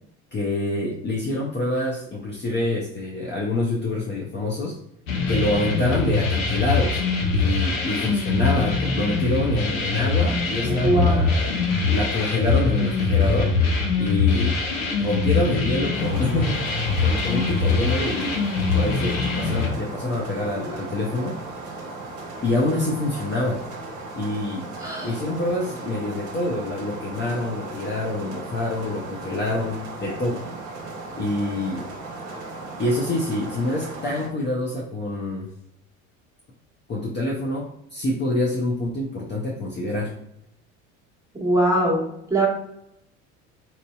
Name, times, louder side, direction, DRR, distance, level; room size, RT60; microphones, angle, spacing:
voice 1, 0.3-4.7 5.3-7.0 7.3-11.5 11.9-13.5 14.0-14.6 15.0-16.6 17.0-18.4 18.7-21.4 22.4-23.6 24.2-24.6 25.0-30.4 31.1-31.9 32.8-35.5 36.9-40.1, left 2 dB, 25° left, -3 dB, 0.6 m, -26 dB
sound 1, 5.1-19.7, left 4 dB, 80° left, 0.8 m, -23 dB
voice 2, 10.6-11.3 24.8-25.1 41.4-42.0 42.3-42.5, right 1 dB, 10° right, -4 dB, 1.2 m, -21 dB
sound 2, 15.9-34.3, right 3 dB, 45° right, 0.9 m, -37 dB
4.1 x 2.6 x 2.3 m, 0.78 s
hypercardioid pair, 65°, 41 cm